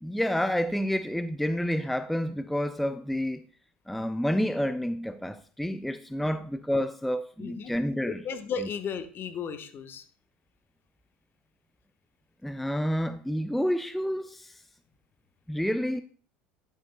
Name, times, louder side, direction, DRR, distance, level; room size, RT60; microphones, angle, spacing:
voice 1, 0.0-3.4 3.9-8.2 12.4-14.5 15.5-16.0, equal, ahead, 0.4 m, -29 dB
voice 2, 7.4-7.7 8.0-10.0, left 6 dB, 40° left, 1.0 m, -35 dB
11.0 x 8.6 x 2.2 m
hypercardioid pair, 75°, 5 cm